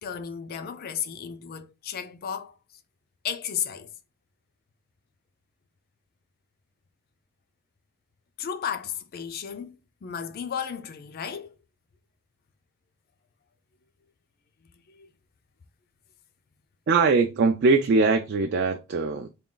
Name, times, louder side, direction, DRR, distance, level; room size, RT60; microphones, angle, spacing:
voice 1, 0.0-2.6 3.2-3.9 8.4-9.8 10.0-11.5 14.9-15.1, left 8 dB, 40° left, 0.4 m, -34 dB
voice 2, 16.9-19.3, right 4 dB, 50° right, 0.3 m, -21 dB
3.6 x 2.3 x 3.7 m
head